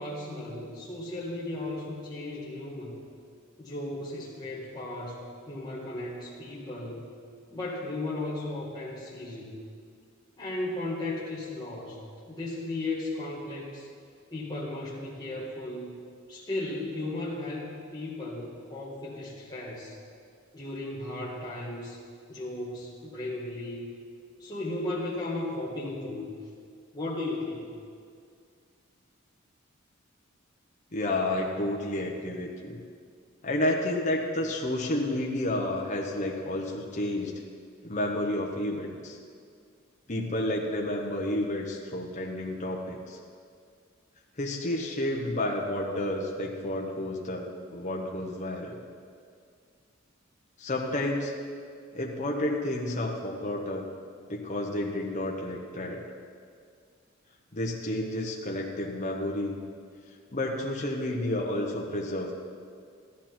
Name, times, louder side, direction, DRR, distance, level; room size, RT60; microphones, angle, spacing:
voice 1, 0.0-3.0 3.6-7.1 7.5-9.6 10.4-13.9 14.3-16.0 16.3-20.0 20.5-22.0 22.3-23.9 24.4-26.3 26.9-27.7, left 2 dB, 20° left, -7 dB, 1.7 m, -35 dB
voice 2, 30.9-32.8 33.4-37.3 37.8-39.2 40.1-43.2 44.4-48.8 50.6-51.3 51.9-53.9 54.3-56.0 57.5-59.6 60.3-62.3, left 1 dB, 35° left, -1 dB, 1.2 m, -30 dB
15.0 x 11.5 x 4.5 m, 2.2 s
head